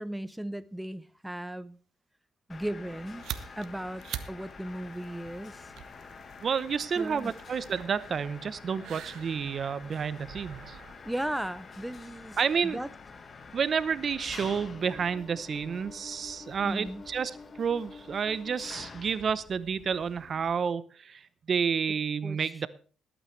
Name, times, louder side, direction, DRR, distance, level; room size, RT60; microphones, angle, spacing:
voice 1, 0.0-1.8 2.5-3.2 3.6-5.7 7.0-7.3 11.0-12.4 12.6-12.9 16.6-17.0 22.2-22.7, right 1 dB, 5° right, 0.6 m, -36 dB
Mechanisms, 2.5-20.5, left 4 dB, 40° left, 1.4 m, -47 dB
sound 1, 2.9-12.0, right 10 dB, 75° right, 1.0 m, -46 dB
voice 2, 6.4-10.8 12.4-12.8 13.5-22.7, right 6 dB, 50° right, 0.8 m, -30 dB
20.5 x 8.9 x 3.2 m
cardioid pair, 90°, 0 cm